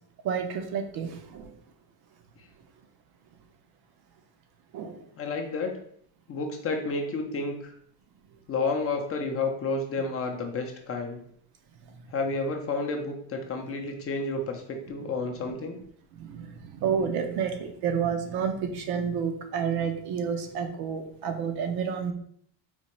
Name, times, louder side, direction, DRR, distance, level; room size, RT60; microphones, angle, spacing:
voice 1, 0.2-1.5 4.7-5.0 16.2-22.1, right 7 dB, 60° right, 6 dB, 0.6 m, -30 dB
voice 2, 5.2-5.8 6.3-7.7 8.5-11.2 12.1-15.8, left 3 dB, 35° left, 3 dB, 0.5 m, -30 dB
4.3 x 2.4 x 2.9 m, 0.64 s
cardioid pair, 130°, 43 cm